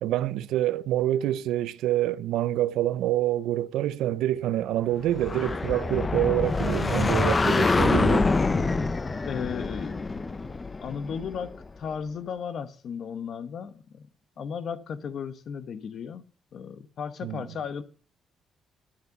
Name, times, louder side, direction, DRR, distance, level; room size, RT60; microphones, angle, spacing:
voice 1, 0.0-8.3 17.2-17.5, right 13 dB, 90° right, 0.5 m, -26 dB
sound 1, 5.0-11.6, left 3 dB, 25° left, 0.8 m, -26 dB
voice 2, 9.2-10.0 10.8-14.1 14.4-16.2 16.5-17.8, left 7 dB, 60° left, 1.1 m, -35 dB
10.5 x 9.2 x 7.1 m
cardioid pair, 90°, 0 cm